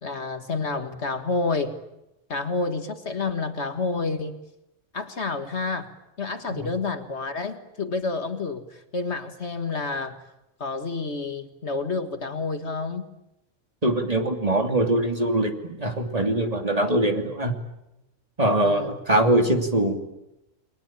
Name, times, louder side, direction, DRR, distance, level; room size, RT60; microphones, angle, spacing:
voice 1, 0.0-1.8 2.3-4.4 4.9-5.9 6.2-10.3 10.6-13.1 18.6-19.0, left 3 dB, 55° left, 9 dB, 2.0 m, -29 dB
voice 2, 13.8-17.5 18.4-20.0, right 1 dB, 30° right, 5 dB, 2.9 m, -22 dB
29.5 x 22.5 x 8.9 m, 0.90 s
omnidirectional pair, 1.3 m